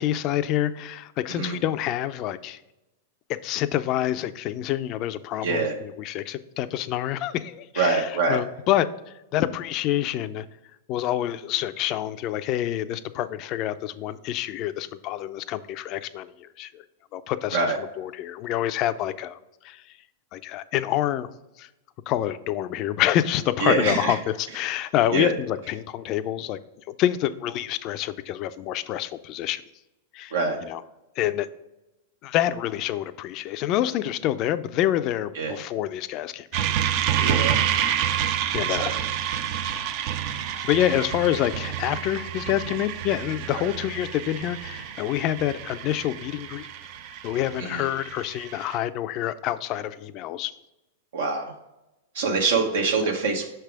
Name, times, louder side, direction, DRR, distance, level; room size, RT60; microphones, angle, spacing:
voice 1, 0.0-2.6 3.3-8.9 9.3-10.5 10.9-16.8 17.1-19.4 19.6-19.8 20.3-21.3 21.6-21.7 22.1-26.6 27.0-29.6 30.1-30.3 30.6-30.8 31.2-31.5 32.2-36.6 37.2-37.4 37.9-39.0 40.5-46.7 47.2-50.5, left 12 dB, 45° left, 13 dB, 0.3 m, -27 dB
voice 2, 5.4-5.7 7.8-8.4 17.5-17.8 23.6-24.1 25.1-25.3 30.3-30.6 35.4-35.6 37.2-37.6 38.7-38.9 47.6-47.8 51.1-51.5 52.1-53.5, right 4 dB, 80° right, 1 dB, 0.8 m, -24 dB
sound 1, 36.5-48.8, right 10 dB, 55° right, 0.4 m, -29 dB
5.8 x 3.4 x 4.8 m, 0.96 s
hypercardioid pair, 115°, 0 cm